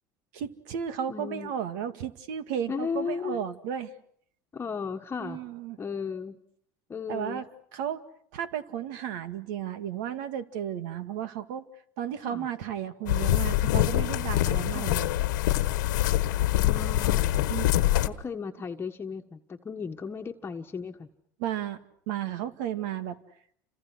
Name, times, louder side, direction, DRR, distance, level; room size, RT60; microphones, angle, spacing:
voice 1, 0.3-3.9 5.2-5.8 7.1-7.4 7.7-8.0 8.3-11.6 12.0-15.1 16.1-16.2 17.5-17.7 21.4-21.8 22.1-23.2, right 9 dB, 75° right, 11 dB, 2.1 m, -33 dB
voice 2, 1.1-1.5 2.7-3.4 4.5-5.4 5.8-6.4 6.9-7.4 12.2-12.5 14.7-14.9 16.5-17.3 17.9-21.1, left 5 dB, 25° left, 4 dB, 1.5 m, -35 dB
sound 1, 13.1-18.1, left 14 dB, 85° left, 1.4 m, -25 dB
30.0 x 26.5 x 6.4 m, 0.63 s
supercardioid pair, 105°, 10 cm